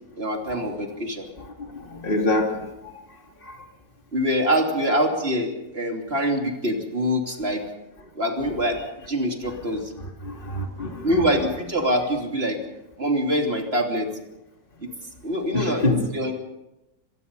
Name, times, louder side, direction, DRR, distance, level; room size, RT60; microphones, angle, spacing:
voice 1, 0.2-1.3 4.1-7.6 8.2-8.8 9.1-9.9 11.0-12.6 13.0-14.1 15.2-16.3, equal, 35° right, 2 dB, 3.3 m, -24 dB
voice 2, 1.4-2.6 3.4-3.6 9.7-9.8 10.2-11.1 15.5-16.1, left 2 dB, 30° left, 2 dB, 3.0 m, -26 dB
24.5 x 19.0 x 5.5 m, 0.94 s
omnidirectional pair, 1.8 m